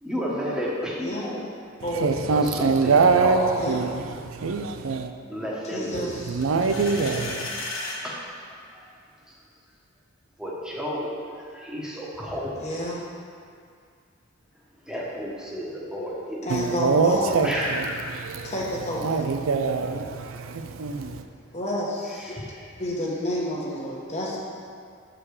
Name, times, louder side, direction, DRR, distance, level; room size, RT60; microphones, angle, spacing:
voice 1, 0.0-1.4 2.3-3.7 5.3-6.2 8.0-9.0 9.3-9.4 10.4-12.7 14.9-16.5 17.4-18.2 22.1-22.7, equal, 5° right, 1.2 m, -32 dB
voice 2, 1.0-1.3 1.8-2.1 3.5-3.8 5.7-6.3 12.6-13.1 16.4-17.5 18.4-19.2 21.5-22.4 22.8-24.4, left 1 dB, 35° left, 1.2 m, -29 dB
voice 3, 2.0-3.4 3.7-3.9 4.4-5.1 6.3-7.5 16.5-17.5 18.4-18.5 19.0-21.2, right 4 dB, 85° right, 0.5 m, -23 dB
sound 1, 6.4-8.0, left 2 dB, 75° left, 1.2 m, -34 dB
7.4 x 5.0 x 4.8 m
head